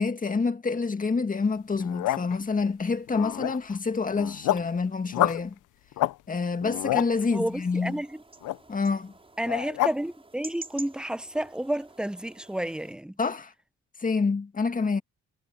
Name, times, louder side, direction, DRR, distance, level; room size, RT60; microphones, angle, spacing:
voice 1, 0.0-5.5 6.3-8.0 8.7-9.1 13.2-13.5 14.0-15.0, left 4 dB, 25° left, 1.9 m, -27 dB
sound 1, 1.7-2.4 3.1-3.8 4.1-4.7 5.1-5.4 5.9-6.2 6.5-7.1 8.4-8.6 9.5-9.9, left 16 dB, 85° left, 0.9 m, -27 dB
sound 2, 7.1-12.9, right 3 dB, 20° right, 6.0 m, -48 dB
voice 2, 7.3-8.2 9.4-13.1, right 1 dB, 5° right, 0.9 m, -31 dB
cardioid pair, 90°, 30 cm